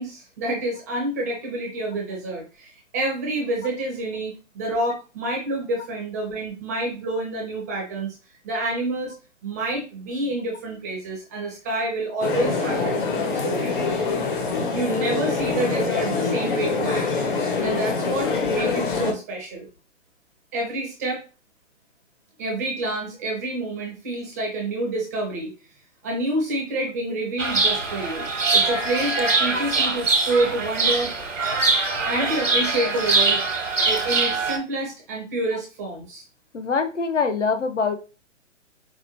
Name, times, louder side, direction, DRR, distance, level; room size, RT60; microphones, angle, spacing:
voice 1, 0.0-8.2 8.4-9.1 9.4-13.8 14.7-17.1 17.6-19.7 20.5-21.2 22.4-25.5 26.0-31.1 32.1-33.4 33.9-36.2, right 2 dB, 15° right, 0 dB, 0.5 m, -28 dB
sound 1, 12.2-19.1, left 4 dB, 45° left, 0.8 m, -25 dB
Chirp tweet, 27.4-34.6, right 3 dB, 85° right, 1.0 m, -23 dB
voice 2, 36.5-37.9, left 5 dB, 70° left, 6 dB, 0.8 m, -23 dB
4.8 x 2.2 x 2.8 m, 0.32 s
figure-of-eight pair, 125°, 38 cm